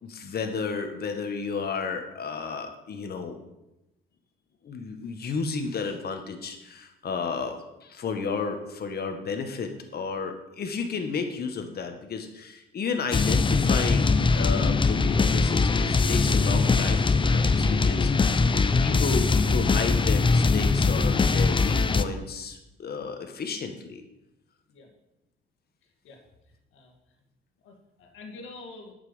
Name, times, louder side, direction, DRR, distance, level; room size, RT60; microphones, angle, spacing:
voice 1, 0.0-3.4 4.6-24.0, left 5 dB, 50° left, 5 dB, 1.6 m, -33 dB
sound 1, 13.1-22.0, left 4 dB, 25° left, 0.6 m, -22 dB
voice 2, 27.6-28.9, left 3 dB, 85° left, 2 dB, 2.1 m, -45 dB
8.2 x 6.0 x 7.2 m, 0.92 s
cardioid pair, 90°, 20 cm